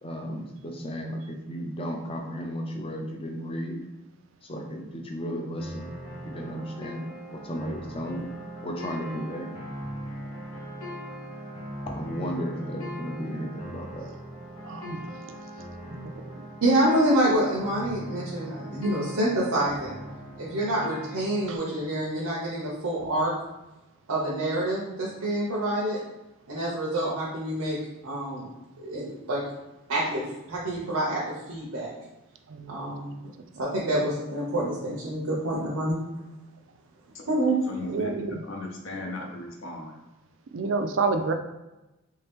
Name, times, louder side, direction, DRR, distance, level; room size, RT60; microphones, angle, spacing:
voice 1, 0.0-3.9 4.4-8.3 8.6-9.5 11.9-14.1, equal, 25° left, 2 dB, 0.5 m, -34 dB
sound 1, 5.6-21.6, equal, 80° left, 1.0 m, -40 dB
voice 2, 14.6-15.1 15.9-16.2 21.5-21.6 23.0-23.1 32.5-32.8 37.8-38.4 40.5-41.3, right 4 dB, 60° right, 6 dB, 0.4 m, -29 dB
voice 3, 16.6-20.0 20.4-23.3 24.1-26.0 26.5-27.8 28.0-28.4 28.8-29.4 29.9-30.2 30.5-31.9 32.7-33.1 33.6-36.0 37.3-37.6, right 1 dB, 80° right, -6 dB, 0.8 m, -27 dB
voice 4, 37.7-40.0, left 2 dB, 60° left, 0 dB, 0.7 m, -37 dB
3.3 x 2.8 x 3.5 m, 0.99 s
head